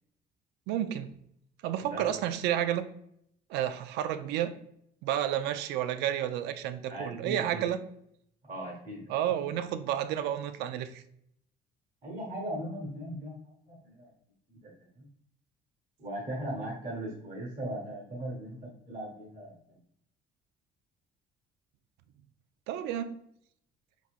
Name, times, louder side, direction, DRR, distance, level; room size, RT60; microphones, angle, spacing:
voice 1, 0.7-1.1 1.6-2.9 3.5-4.5 5.0-7.8 9.1-11.0 22.7-23.2, right 11 dB, 90° right, 0.4 m, -31 dB
voice 2, 1.9-2.2 6.9-7.6 8.5-9.1 12.0-13.3 13.7-14.1 14.5-15.1 16.0-19.8, right 1 dB, 45° right, 1.3 m, -39 dB
4.5 x 4.1 x 2.4 m
cardioid pair, 110°, 17 cm